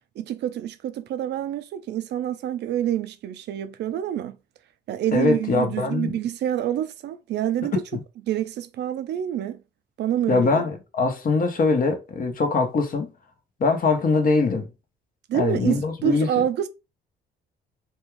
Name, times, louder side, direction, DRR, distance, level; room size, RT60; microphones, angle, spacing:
voice 1, 0.2-4.4 4.9-7.8 8.3-9.6 10.0-10.6 15.3-16.7, right 11 dB, 60° right, 0.5 m, -27 dB
voice 2, 5.1-6.1 10.3-13.1 13.6-14.7 15.3-16.3, left 4 dB, 45° left, 0.9 m, -22 dB
2.6 x 2.3 x 3.1 m
supercardioid pair, 70°, 20 cm